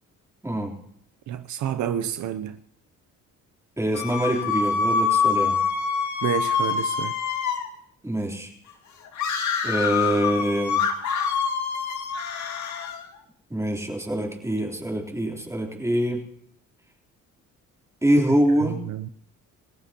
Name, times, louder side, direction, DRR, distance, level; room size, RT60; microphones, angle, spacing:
voice 1, 0.4-0.7 3.8-5.6 8.0-8.5 9.6-10.8 13.5-16.2 18.0-18.8, right 1 dB, 10° right, 3.4 m, -24 dB
voice 2, 1.3-2.6 6.2-7.1 18.6-19.1, right 10 dB, 70° right, 0.7 m, -29 dB
sound 1, 3.9-7.7 9.2-13.0, left 6 dB, 70° left, 2.1 m, -25 dB
27.5 x 14.5 x 2.9 m
cardioid pair, 90°, 30 cm